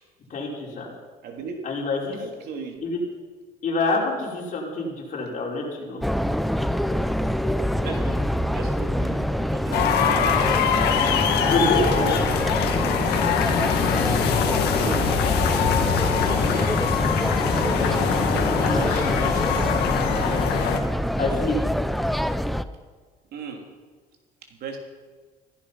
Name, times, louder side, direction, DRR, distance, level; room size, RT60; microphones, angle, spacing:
voice 1, 0.3-0.9 1.6-2.2 2.8-3.0 3.6-6.0 11.5-12.3 18.5-18.8 21.2-21.6, left 3 dB, 50° left, -2 dB, 5.4 m, -27 dB
voice 2, 1.2-1.6 2.2-2.9 7.8-10.5 14.8-15.1 15.6-17.3 18.2-19.8 23.3-23.6 24.5-24.8, right 4 dB, 70° right, 2 dB, 3.2 m, -37 dB
sound 1, 6.0-22.6, equal, ahead, 0.6 m, -25 dB
sound 2, 9.7-20.8, left 8 dB, 75° left, 1.9 m, -23 dB
16.0 x 15.0 x 5.7 m, 1.4 s
cardioid pair, 110°, 17 cm